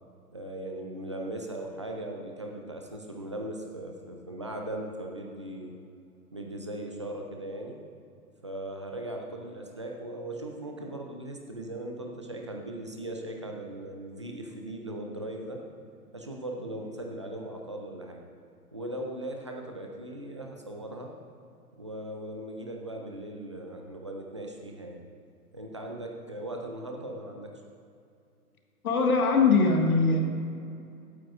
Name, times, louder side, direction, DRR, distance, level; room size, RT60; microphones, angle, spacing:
voice 1, 0.3-5.7 6.3-7.8 8.4-15.6 16.1-18.2 18.7-21.1 21.8-25.0 25.5-27.6, right 1 dB, 20° right, 1 dB, 0.3 m, -38 dB
voice 2, 28.8-30.2, left 4 dB, 65° left, 2 dB, 1.7 m, -21 dB
15.5 x 9.0 x 2.4 m, 2.5 s
hypercardioid pair, 135°, 46 cm